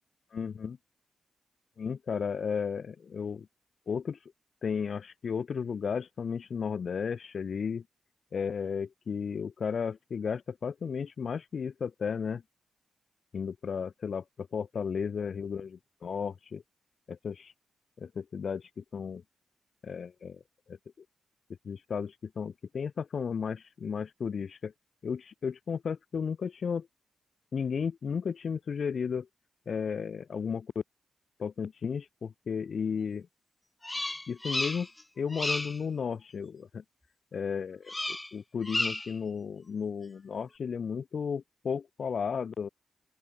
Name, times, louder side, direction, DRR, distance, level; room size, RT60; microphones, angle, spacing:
voice 1, 0.3-0.8 1.8-3.5 3.9-4.2 4.6-7.8 8.3-12.4 13.3-16.6 17.1-17.5 18.0-19.2 19.8-20.4 20.7-20.8 21.6-24.7 25.0-26.9 27.5-29.3 29.7-30.7 31.4-33.3 34.3-34.9 35.2-36.8 37.3-42.7, left 6 dB, 65° left, 0.9 m, -34 dB
Bird vocalization bird call bird song, 33.8-35.0 35.3-35.8 37.9-38.3 38.6-39.2, left 1 dB, 15° left, 1.7 m, -33 dB
open air
cardioid pair, 65°, 0 cm